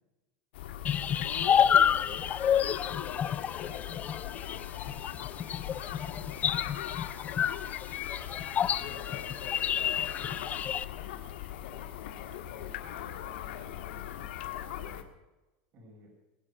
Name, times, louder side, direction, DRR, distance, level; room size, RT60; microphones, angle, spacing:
sound 1, 0.5-15.0, left 11 dB, 85° left, 1.7 m, -40 dB
sound 2, 0.8-10.8, left 8 dB, 30° left, 0.6 m, -29 dB
voice 1, 2.0-2.3 3.0-4.1 8.8-10.7 10.9-11.3 11.6-14.5, left 7 dB, 70° left, -1 dB, 4.8 m, -48 dB
voice 2, 5.7-6.8 8.3-9.0 14.7-15.1 15.7-16.1, equal, 40° right, 0 dB, 6.0 m, -57 dB
21.0 x 8.5 x 6.8 m, 1.1 s
supercardioid pair, 130°, 6 cm